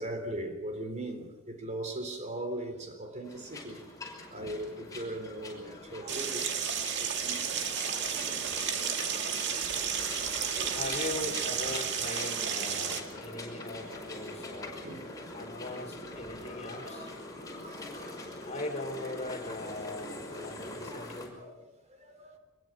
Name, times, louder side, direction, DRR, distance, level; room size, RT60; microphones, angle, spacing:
voice 1, 0.0-3.9 4.3-6.5 7.0-10.0 10.3-11.0 13.8-15.4 16.5-17.1 17.3-18.4 19.1-19.2 20.0-21.5 21.9-22.4, right 1 dB, 35° right, 3.8 m, -41 dB
sound 1, 3.2-21.3, left 2 dB, 20° left, 5.8 m, -43 dB
sound 2, 6.1-13.0, right 7 dB, 60° right, 2.0 m, -32 dB
voice 2, 9.9-14.7 15.3-17.1 18.4-21.4, left 2 dB, 35° left, 3.7 m, -40 dB
24.5 x 22.0 x 6.2 m
head